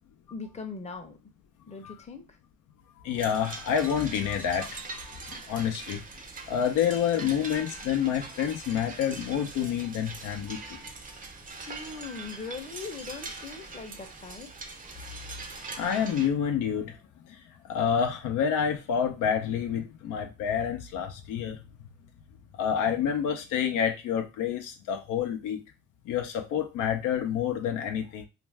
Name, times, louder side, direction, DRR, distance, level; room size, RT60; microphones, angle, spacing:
voice 1, 0.3-1.2 1.7-2.4 11.7-14.5, left 4 dB, 20° left, 5 dB, 0.6 m, -40 dB
voice 2, 3.0-4.8 5.1-6.0 6.5-10.8 15.8-16.9 17.7-21.6 22.6-25.6 26.1-28.3, left 8 dB, 85° left, 5 dB, 0.6 m, -28 dB
sound 1, 3.2-16.3, right 3 dB, 30° right, 0.5 m, -42 dB
2.5 x 2.2 x 3.2 m, 0.26 s
cardioid pair, 90°, 30 cm